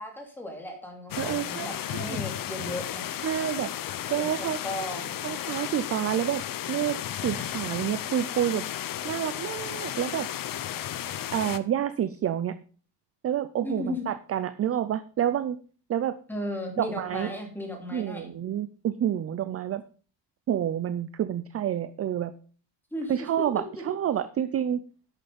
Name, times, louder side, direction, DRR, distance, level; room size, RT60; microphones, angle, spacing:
voice 1, 0.0-3.1 4.2-5.1 13.6-14.1 16.3-18.3 22.9-23.3, left 1 dB, 5° left, 1 dB, 2.7 m, -35 dB
sound 1, 1.1-11.6, left 11 dB, 45° left, 0.7 m, -34 dB
voice 2, 1.2-2.2 3.2-3.7 4.1-4.6 5.2-6.4 6.7-8.6 9.0-10.3 11.3-12.6 13.2-15.6 15.9-16.2 16.8-17.3 17.9-19.8 20.5-22.3 23.1-24.8, right 10 dB, 35° right, 13 dB, 0.4 m, -28 dB
11.5 x 6.6 x 5.2 m, 0.40 s
cardioid pair, 165°, 46 cm